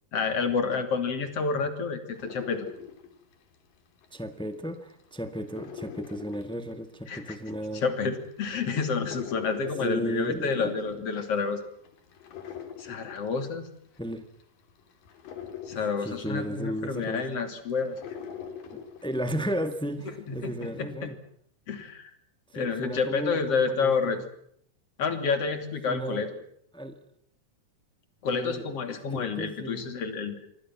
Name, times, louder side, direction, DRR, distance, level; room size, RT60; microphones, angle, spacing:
voice 1, 0.1-2.7 7.1-7.4 7.8-11.6 12.8-13.7 15.7-18.0 20.3-21.1 21.7-22.1 22.5-24.2 25.0-26.3 28.2-30.5, left 5 dB, 45° left, 8 dB, 3.6 m, -29 dB
sound 1, 2.1-4.4 4.7-19.9 20.3-20.8, left 8 dB, 80° left, 4.6 m, -44 dB
voice 2, 4.1-7.8 9.8-11.0 14.0-14.2 16.0-17.4 18.7-21.2 22.5-24.2 25.9-26.3 26.7-27.0 28.3-29.9, equal, 5° left, 8 dB, 0.4 m, -34 dB
27.0 x 24.0 x 6.1 m, 0.68 s
omnidirectional pair, 3.9 m